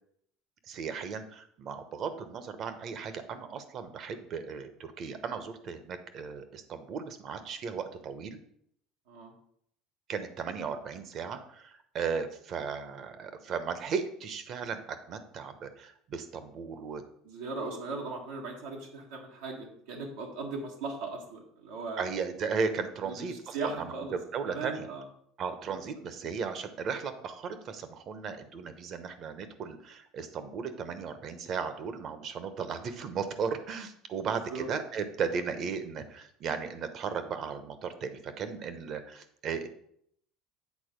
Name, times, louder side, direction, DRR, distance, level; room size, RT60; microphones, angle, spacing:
voice 1, 0.7-8.4 10.1-17.0 22.0-24.9 25.4-39.7, right 6 dB, 50° right, 10 dB, 0.9 m, -36 dB
voice 2, 17.2-22.1 23.0-24.2 24.5-25.0 25.7-25.8 26.2-26.3 34.2-34.7, right 3 dB, 90° right, -1 dB, 1.5 m, -38 dB
8.5 x 4.1 x 5.2 m, 0.69 s
supercardioid pair, 115°, 0 cm